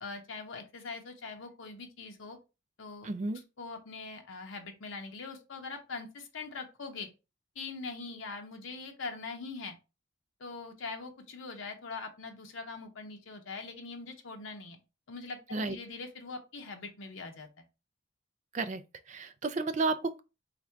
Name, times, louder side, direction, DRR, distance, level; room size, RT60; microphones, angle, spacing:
voice 1, 0.0-2.4 2.8-3.1 3.6-7.1 7.5-9.7 10.4-14.8 15.1-17.6, left 4 dB, 85° left, 0.7 m, -42 dB
voice 2, 3.0-3.4 15.5-15.8 18.5-18.8 19.1-20.2, right 3 dB, 35° right, 0.4 m, -32 dB
3.6 x 2.5 x 4.4 m
head